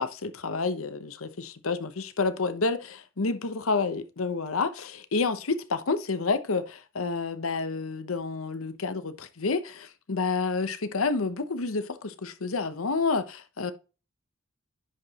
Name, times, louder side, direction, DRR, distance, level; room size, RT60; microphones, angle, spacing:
voice 1, 0.0-13.7, left 4 dB, 90° left, 0.9 m, -29 dB
10.5 x 5.0 x 2.9 m
head